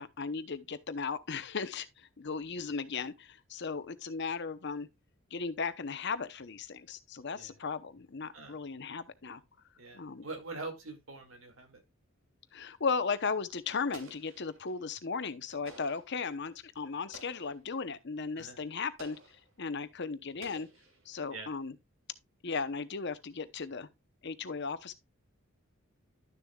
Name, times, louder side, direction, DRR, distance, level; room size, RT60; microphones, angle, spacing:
voice 1, 0.0-4.9 5.3-9.4 9.9-10.3 12.5-19.2 19.6-20.7 21.1-21.7 22.4-23.9 24.2-24.9, left 5 dB, 60° left, 0.9 m, -36 dB
voice 2, 9.8-11.8 18.4-18.6 21.3-21.5, right 3 dB, 90° right, 2.3 m, -44 dB
Explosion, 13.9-14.8 15.6-16.2 17.1-17.7 19.0-19.5 20.4-21.3, right 2 dB, 75° right, 2.9 m, -53 dB
11.5 x 6.9 x 2.4 m
head